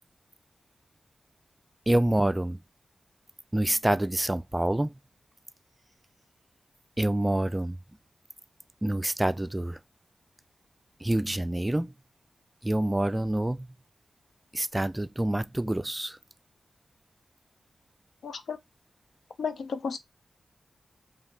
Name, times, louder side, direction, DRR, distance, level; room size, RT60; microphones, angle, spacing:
voice 1, 1.9-2.6 3.5-4.9 7.0-7.8 8.8-9.8 11.0-11.9 12.6-13.6 14.5-16.2, right 1 dB, 20° right, 0.3 m, -26 dB
voice 2, 18.2-18.6 19.4-20.0, left 5 dB, 85° left, 0.5 m, -33 dB
2.7 x 2.2 x 3.8 m
cardioid pair, 50°, 0 cm